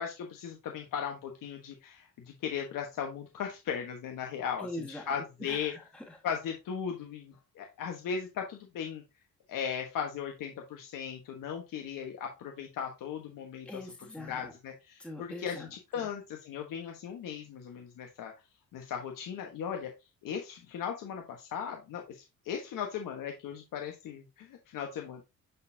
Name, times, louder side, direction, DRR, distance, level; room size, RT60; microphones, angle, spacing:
voice 1, 0.0-5.7 6.2-9.0 9.5-13.7 14.2-18.3 18.7-19.9 20.2-25.2, left 7 dB, 70° left, 3 dB, 1.3 m, -37 dB
voice 2, 4.6-6.2 13.6-14.5 15.0-16.1, left 1 dB, 5° left, -1 dB, 1.5 m, -43 dB
8.2 x 4.2 x 2.7 m, 0.24 s
cardioid pair, 135°, 34 cm